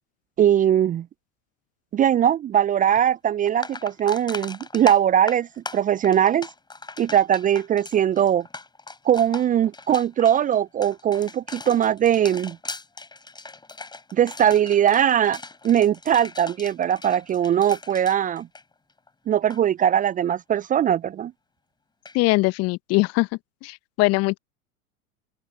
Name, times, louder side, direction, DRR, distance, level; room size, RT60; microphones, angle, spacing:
voice 1, 0.4-1.1 1.9-6.5 7.0-8.5 9.0-12.6 14.1-15.4 15.6-18.5 19.3-21.3, right 10 dB, 20° right, 0.8 m, -20 dB
sound 1, 3.0-3.1 3.4-19.1 19.3-19.6 22.0-22.2, left 3 dB, 10° left, 6.4 m, -39 dB
voice 2, 22.1-23.3 23.6-24.4, left 23 dB, 35° left, 1.2 m, -21 dB
open air
figure-of-eight pair, 90°, 42 cm